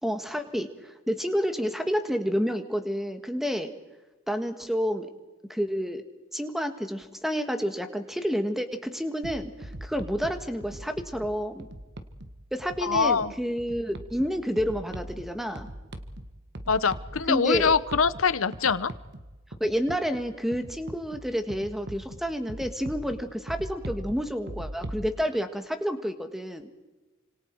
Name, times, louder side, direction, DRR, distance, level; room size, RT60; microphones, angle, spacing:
voice 1, 0.0-3.7 4.3-5.1 5.5-6.0 6.3-11.7 12.5-15.7 17.3-17.7 19.6-26.7, equal, ahead, 7 dB, 1.6 m, -29 dB
sound 1, 9.2-25.1, right 1 dB, 55° right, 1.5 m, -41 dB
voice 2, 12.8-13.3 16.7-18.9, left 5 dB, 85° left, 15 dB, 0.9 m, -24 dB
29.0 x 26.0 x 4.7 m, 1.1 s
head